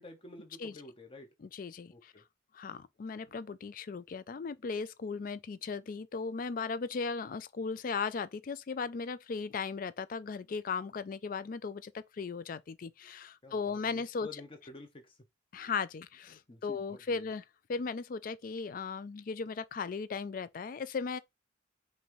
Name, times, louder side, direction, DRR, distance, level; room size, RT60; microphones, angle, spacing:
voice 1, 0.0-1.3 1.9-2.2 13.4-15.1 16.5-17.3, left 2 dB, 30° left, 0.8 m, -50 dB
voice 2, 1.4-2.1 2.5-14.4 15.5-17.4 17.7-21.2, left 5 dB, 45° left, 0.3 m, -37 dB
5.4 x 2.7 x 3.1 m
head